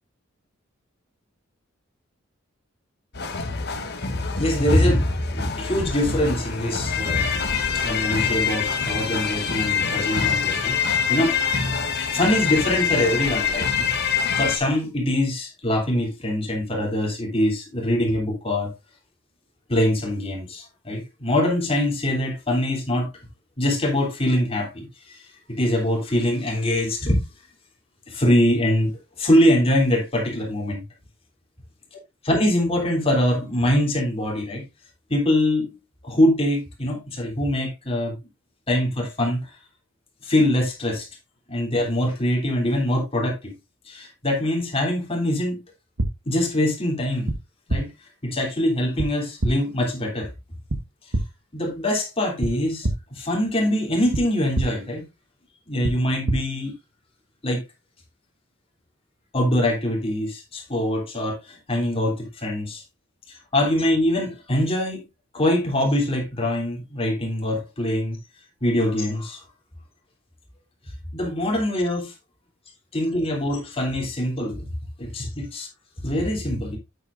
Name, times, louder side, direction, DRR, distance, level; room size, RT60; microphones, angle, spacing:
sound 1, 3.1-14.6, left 6 dB, 55° left, 1.3 m, -25 dB
voice 1, 4.2-7.4 7.7-11.4 12.1-13.8 14.3-18.7 19.7-23.1 23.6-25.2 25.5-27.2 28.1-28.9 29.2-30.8 32.2-34.6 35.1-35.7 36.0-38.2 38.7-39.5 40.2-41.1 41.5-43.5 43.9-45.6 46.2-47.3 47.7-47.9 48.2-50.3 51.5-52.9 53.1-55.0 55.7-56.7 57.4-57.6 59.3-62.8 63.3-65.0 65.3-68.2 68.6-69.4 71.1-72.1 72.9-74.7 75.0-75.7 76.0-76.8, left 1 dB, 30° left, 3.2 m, -23 dB
sound 2, 46.0-46.1 47.3-47.4 47.7-47.8 49.0-49.1 49.4-49.5 50.7-50.8 51.1-51.2 52.4-52.5 52.8-52.9 54.1-54.2 54.5-54.7 55.8-55.9 56.3-56.4, right 1 dB, 70° right, 1.3 m, -23 dB
9.1 x 8.9 x 2.5 m
head